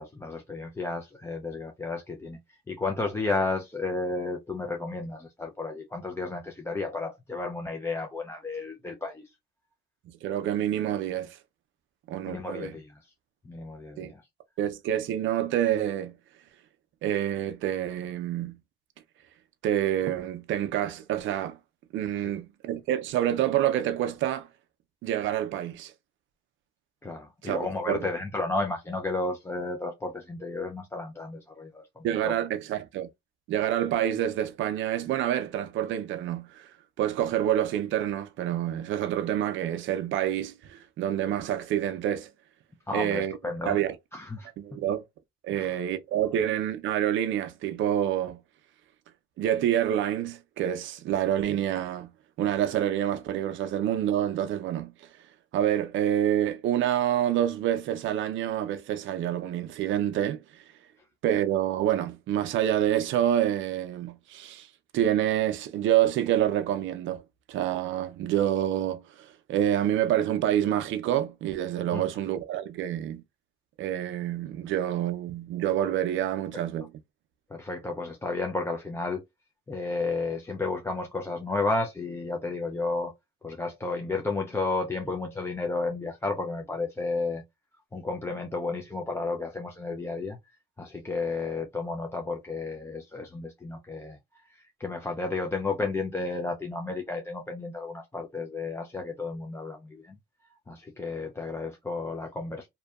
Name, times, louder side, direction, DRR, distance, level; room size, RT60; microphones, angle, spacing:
voice 1, 0.0-2.4 2.7-9.3 12.2-13.0 13.4-14.2 22.1-22.3 27.0-32.3 42.9-43.8 44.1-44.8 45.5-45.8 71.9-72.0 76.5-76.9 77.5-79.2 79.7-83.1 83.4-87.4 87.9-90.4 90.8-94.2 94.5-100.2 100.7-102.7, left 3 dB, 15° left, 0.4 m, -32 dB
voice 2, 10.1-11.4 12.1-12.7 14.0-14.1 14.6-16.1 17.0-18.6 19.6-21.6 21.9-24.5 25.0-25.9 27.4-27.6 27.9-28.1 32.0-33.1 33.5-36.7 37.0-42.3 42.9-43.4 43.6-43.9 44.6-45.0 45.4-48.4 49.4-52.1 52.4-54.9 55.5-60.6 61.2-64.7 64.9-67.2 67.5-73.2 73.8-76.9, right 11 dB, 75° right, 0.4 m, -27 dB
2.6 x 2.2 x 2.2 m
cardioid pair, 90°, 20 cm